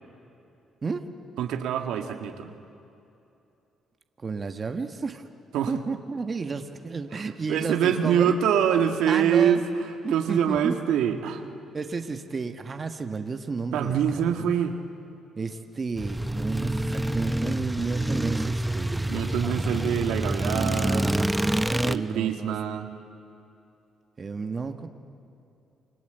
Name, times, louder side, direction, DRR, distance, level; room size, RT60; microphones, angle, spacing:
voice 1, 1.4-2.6 5.5-5.7 7.1-9.6 10.1-11.4 13.7-14.7 19.1-21.1 21.8-22.9, right 9 dB, 85° right, 5 dB, 2.0 m, -25 dB
voice 2, 4.2-5.3 5.7-8.4 9.1-9.6 10.0-10.8 11.7-14.5 15.4-19.2 19.4-20.2 21.0-21.2 21.9-22.5 24.2-24.9, right 4 dB, 35° right, 6 dB, 1.6 m, -32 dB
sound 1, 16.0-22.0, right 1 dB, 5° right, 0.8 m, -27 dB
29.0 x 25.0 x 8.1 m, 2.7 s
cardioid pair, 90°, 0 cm